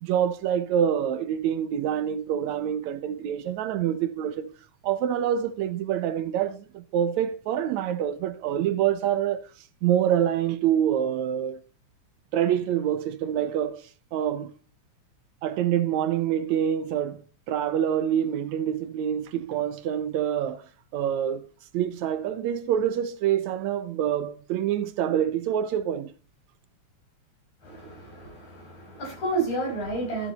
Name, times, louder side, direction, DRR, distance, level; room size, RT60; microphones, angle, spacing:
voice 1, 0.0-4.5 4.8-9.5 9.8-11.6 12.3-14.5 15.4-20.6 20.9-21.5 21.7-26.1, right 10 dB, 75° right, 2.0 m, -26 dB
voice 2, 27.6-30.3, right 2 dB, 70° left, 7.1 m, -31 dB
13.5 x 7.4 x 4.2 m
omnidirectional pair, 3.4 m